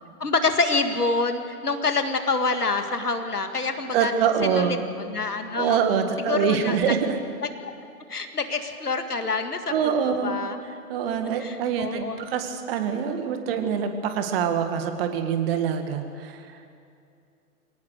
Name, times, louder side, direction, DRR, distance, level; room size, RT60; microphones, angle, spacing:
voice 1, 0.2-4.1 4.4-5.8 6.3-6.9 7.4-7.7 8.1-10.0 10.2-10.6 11.4-12.2, left 3 dB, 80° left, 7 dB, 1.9 m, -26 dB
voice 2, 3.9-4.8 5.6-7.2 9.7-10.4 10.9-16.4, right 7 dB, 40° right, 7 dB, 1.9 m, -25 dB
22.5 x 18.0 x 6.6 m, 2.5 s
figure-of-eight pair, 115°, 45 cm